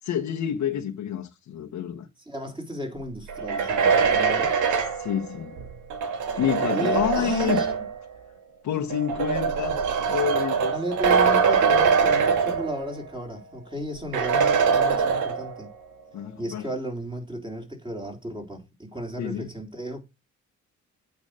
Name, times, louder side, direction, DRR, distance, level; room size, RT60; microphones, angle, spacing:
voice 1, 0.0-2.1 4.9-5.6 6.4-7.6 8.6-10.7 16.1-16.7 19.2-19.5, left 9 dB, 75° left, 1.2 m, -28 dB
voice 2, 2.3-4.5 6.7-7.7 10.6-15.7 16.4-20.0, right 1 dB, 15° right, 3.9 m, -34 dB
sound 1, 3.3-8.0 8.9-13.1 13.4-13.5 14.1-15.7, right 6 dB, 80° right, 1.9 m, -23 dB
8.7 x 5.1 x 6.4 m
cardioid pair, 90°, 30 cm